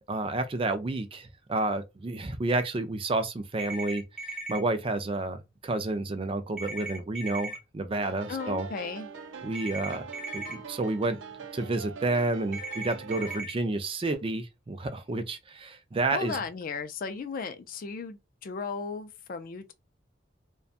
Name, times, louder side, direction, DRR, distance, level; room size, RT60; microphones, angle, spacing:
voice 1, 0.1-4.0 4.5-8.7 9.4-10.0 10.3-11.2 11.5-16.4, right 2 dB, 30° right, 0.4 m, -30 dB
sound 1, 3.6-4.6 6.6-7.6 9.5-10.5 12.5-13.5, right 2 dB, 5° right, 0.8 m, -37 dB
sound 2, 7.9-13.4, right 6 dB, 85° right, 0.5 m, -43 dB
voice 2, 8.3-9.1 16.1-19.7, left 5 dB, 50° left, 0.4 m, -35 dB
2.5 x 2.2 x 2.4 m
head